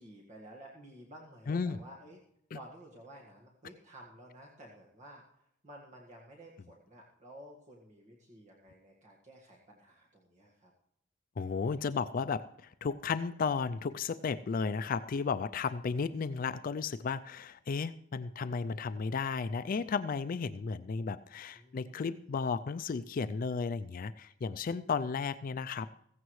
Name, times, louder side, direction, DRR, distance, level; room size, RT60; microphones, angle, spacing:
voice 1, 0.0-2.2 2.5-5.2 5.6-10.7 21.5-22.3, right 1 dB, 40° right, -2 dB, 1.7 m, -53 dB
voice 2, 1.5-1.8 2.5-2.6 11.4-25.9, left 5 dB, 45° left, 13 dB, 0.4 m, -34 dB
15.5 x 15.5 x 3.2 m, 0.74 s
head